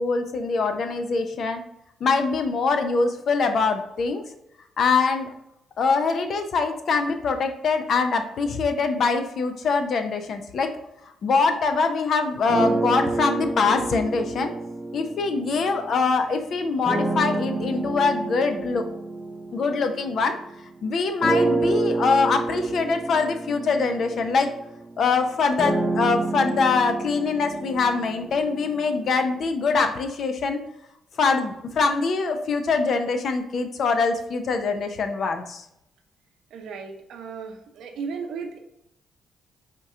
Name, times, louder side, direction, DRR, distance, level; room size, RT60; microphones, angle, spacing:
voice 1, 0.0-1.6 2.0-4.2 4.8-5.3 5.8-10.7 11.2-14.5 14.9-18.8 19.5-20.4 20.8-24.5 25.0-30.6 31.2-35.6, left 4 dB, 60° left, 6 dB, 0.6 m, -23 dB
sound 1, 12.5-16.0 16.8-20.6 21.2-29.2, right 2 dB, 15° right, 0.7 m, -28 dB
voice 2, 36.5-38.6, right 5 dB, 75° right, 4 dB, 0.7 m, -35 dB
4.5 x 3.0 x 3.6 m, 0.81 s
supercardioid pair, 55°, 0 cm